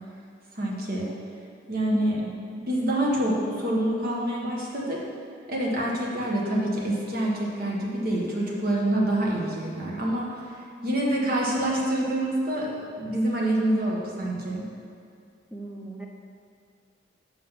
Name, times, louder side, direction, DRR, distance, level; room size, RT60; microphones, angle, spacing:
voice 1, 0.5-1.1 1.7-2.2 2.6-5.0 5.5-10.4 10.8-14.7, right 1 dB, 55° right, -3 dB, 1.4 m, -26 dB
voice 2, 1.9-2.3 15.5-16.1, right 1 dB, 5° right, -1 dB, 0.7 m, -35 dB
6.5 x 5.9 x 5.8 m, 2.3 s
head